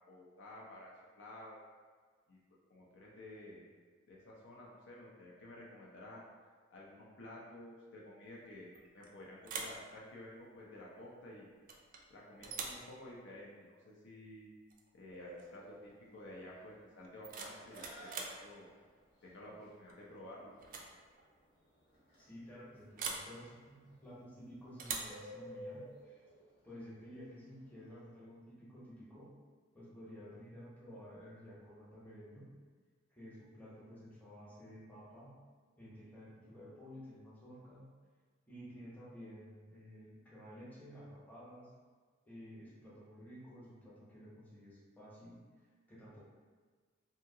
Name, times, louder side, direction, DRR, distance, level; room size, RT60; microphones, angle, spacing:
voice 1, 0.1-0.9 1.2-1.6 2.3-2.4 2.7-3.7 4.1-6.2 6.7-11.5 12.1-14.5 14.9-18.7 19.2-20.5, left 1 dB, 65° left, -4 dB, 0.5 m, -52 dB
sound 1, 8.7-9.1 9.4-9.8 11.7-12.0 12.4-12.9 14.7-14.9 15.2-15.6 17.0-18.4 19.9-20.2 20.6-20.9 21.2-21.3 23.0-23.3 24.8-25.2, right 5 dB, 45° right, 0.3 m, -43 dB
Bird, 15.1-28.1, equal, 85° left, 1.1 m, -55 dB
voice 2, 22.2-26.2 26.6-29.4 29.7-32.6 33.1-35.4 35.8-38.0 38.5-41.7 42.3-45.4 45.9-46.2, equal, 10° left, -9 dB, 0.8 m, -53 dB
2.8 x 2.7 x 2.6 m, 1.5 s
head